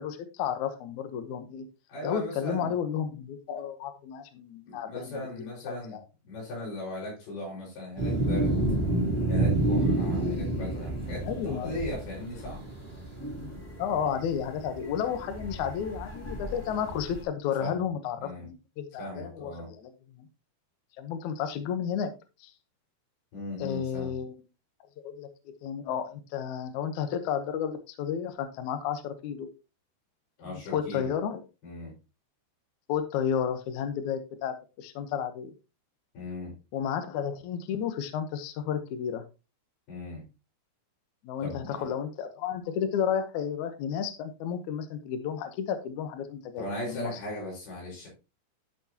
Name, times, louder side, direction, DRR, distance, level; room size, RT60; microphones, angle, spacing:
voice 1, 0.0-1.7 2.0-6.0 11.2-11.7 13.8-20.2 21.0-22.1 22.4-22.5 23.6-24.4 25.0-25.3 25.6-29.5 30.7-31.4 32.9-35.5 36.7-39.2 41.2-47.2, left 8 dB, 85° left, 8 dB, 1.6 m, -32 dB
voice 2, 1.9-2.7 4.7-6.0 6.3-8.7 9.3-12.6 17.6-17.7 18.2-18.5 19.0-19.7 23.3-24.2 30.4-31.1 31.6-31.9 36.1-36.5 39.9-40.3 41.4-41.9 46.6-48.1, left 1 dB, 60° left, -3 dB, 6.9 m, -38 dB
sound 1, 8.0-17.2, right 2 dB, 5° left, 2.8 m, -30 dB
12.0 x 6.2 x 2.9 m, 0.29 s
omnidirectional pair, 5.0 m